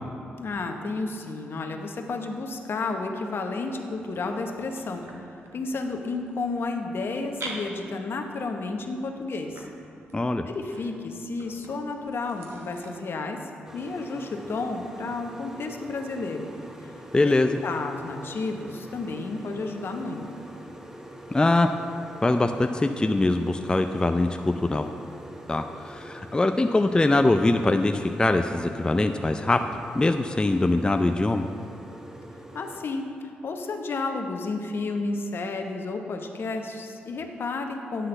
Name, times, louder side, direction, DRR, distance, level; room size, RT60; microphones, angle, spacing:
voice 1, 0.4-5.0 5.5-9.7 10.5-13.4 13.7-16.5 16.8-20.2 32.5-38.1, left 3 dB, 60° left, 4 dB, 0.9 m, -32 dB
sound 1, 3.6-12.9, right 2 dB, 70° right, 1.1 m, -46 dB
voice 2, 10.1-10.4 17.1-17.6 21.3-21.7 22.2-24.8 25.5-29.6 29.9-31.5, left 2 dB, 20° left, 6 dB, 0.4 m, -22 dB
sound 2, 13.6-32.8, right 1 dB, 10° right, 1.0 m, -44 dB
10.0 x 3.9 x 6.5 m, 2.6 s
supercardioid pair, 50°, 4 cm